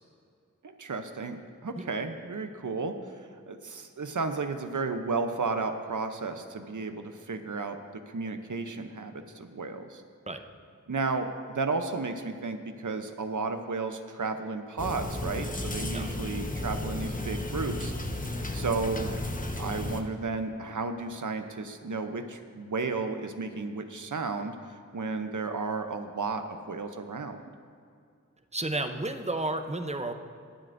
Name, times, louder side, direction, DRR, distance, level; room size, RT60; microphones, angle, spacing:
voice 1, 0.6-3.0 3.5-10.0 10.9-17.9 18.5-19.1 19.6-24.6 24.9-27.4, right 4 dB, 75° right, 7 dB, 0.7 m, -33 dB
sound 1, 14.8-20.0, left 1 dB, 25° left, 0.9 m, -33 dB
voice 2, 28.5-30.1, right 2 dB, 20° right, 7 dB, 0.7 m, -32 dB
21.5 x 7.7 x 2.6 m, 2.3 s
wide cardioid pair, 55°, 31 cm